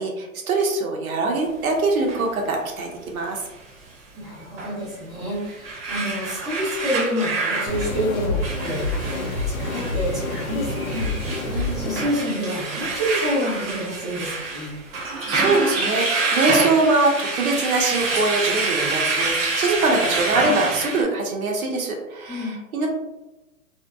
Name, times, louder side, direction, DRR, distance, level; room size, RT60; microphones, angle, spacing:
voice 1, 0.0-3.4 11.4-11.9 14.9-22.9, right 3 dB, 75° right, 1 dB, 0.7 m, -23 dB
sound 1, 2.1-2.2 4.6-4.7 5.3-21.0, right 3 dB, 45° right, 0.8 m, -27 dB
voice 2, 4.1-11.1 11.7-14.7 22.3-22.5, equal, ahead, -13 dB, 0.7 m, -28 dB
sound 2, 7.7-12.1, left 2 dB, 75° left, 0.7 m, -27 dB
2.6 x 2.1 x 2.2 m, 1.0 s
hypercardioid pair, 140°, 43 cm